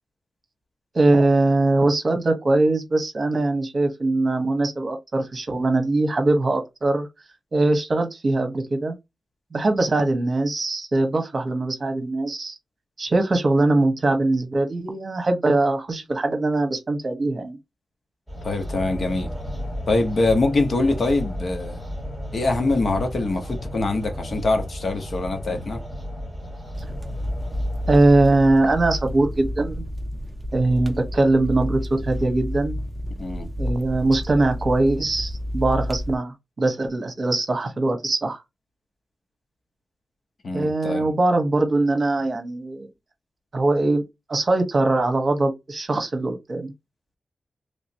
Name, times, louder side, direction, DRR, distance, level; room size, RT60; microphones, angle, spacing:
voice 1, 0.9-7.1 7.5-8.9 9.5-12.5 13.0-17.6 27.9-29.8 30.5-32.8 33.6-38.4 40.5-42.9 43.5-44.0 44.3-46.7, right 2 dB, 45° right, 1.1 m, -21 dB
sound 1, 18.3-28.2, equal, 10° left, 2.0 m, -33 dB
voice 2, 18.4-19.3 19.9-21.8 22.3-25.8 33.2-33.5 40.4-41.1, left 2 dB, 55° left, 0.9 m, -23 dB
sound 2, 26.7-36.2, equal, 10° right, 0.6 m, -30 dB
3.2 x 3.0 x 2.8 m
wide cardioid pair, 130°, 0 cm